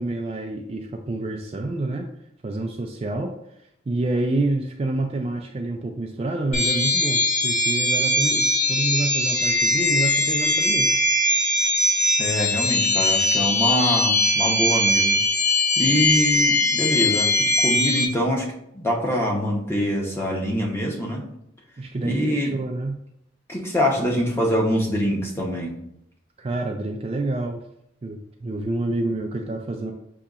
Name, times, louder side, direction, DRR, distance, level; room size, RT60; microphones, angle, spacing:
voice 1, 0.0-2.1 2.4-3.3 3.9-10.9 21.8-23.0 26.4-27.6 28.0-29.9, right 2 dB, 30° right, 3 dB, 0.3 m, -28 dB
sound 1, 6.5-18.1, left 1 dB, 40° left, 1.0 m, -21 dB
voice 2, 12.2-15.2 15.8-18.5 18.7-21.2 22.0-22.6 23.5-25.7, equal, 10° left, -2 dB, 0.8 m, -24 dB
6.6 x 2.8 x 2.4 m, 0.77 s
head